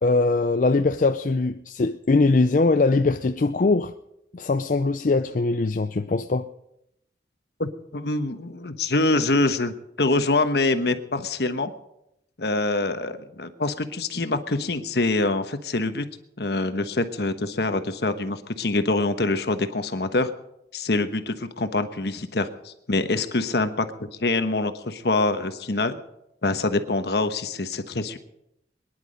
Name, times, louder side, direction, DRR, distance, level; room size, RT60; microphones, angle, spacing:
voice 1, 0.0-3.9 4.3-6.5, left 3 dB, 45° left, 0.5 m, -21 dB
voice 2, 7.6-11.7 12.4-16.1 16.4-20.3 20.7-26.0 26.4-28.2, left 2 dB, 65° left, 1.2 m, -25 dB
22.5 x 11.0 x 5.2 m
head